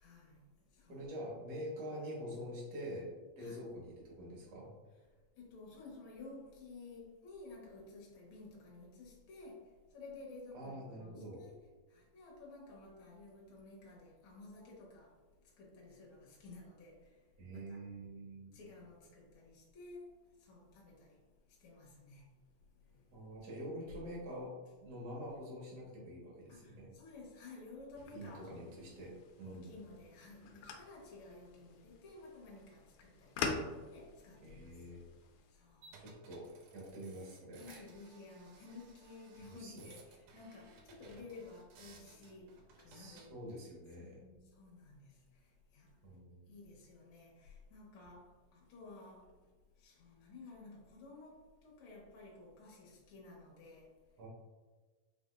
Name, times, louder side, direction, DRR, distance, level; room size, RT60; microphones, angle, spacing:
voice 1, 0.0-1.0 3.4-3.6 5.3-11.6 11.9-17.8 18.5-23.5 26.5-28.8 29.4-34.7 35.5-36.0 36.3-36.4 37.6-43.3 44.0-46.0 46.5-54.2, left 3 dB, 55° left, 1.7 m, -54 dB
voice 2, 0.9-3.1 3.3-4.7 10.5-11.4 17.4-18.5 23.1-24.5 24.8-26.9 28.1-29.7 34.4-35.0 36.0-36.4 36.7-37.8 39.5-39.8 42.9-44.2 46.0-46.5 54.2-54.3, equal, 50° right, 1.2 m, -46 dB
sound 1, 27.9-35.5, left 5 dB, 85° left, 2.0 m, -46 dB
sound 2, 35.8-43.3, right 3 dB, 75° right, 1.9 m, -60 dB
5.1 x 3.4 x 2.5 m
omnidirectional pair, 3.4 m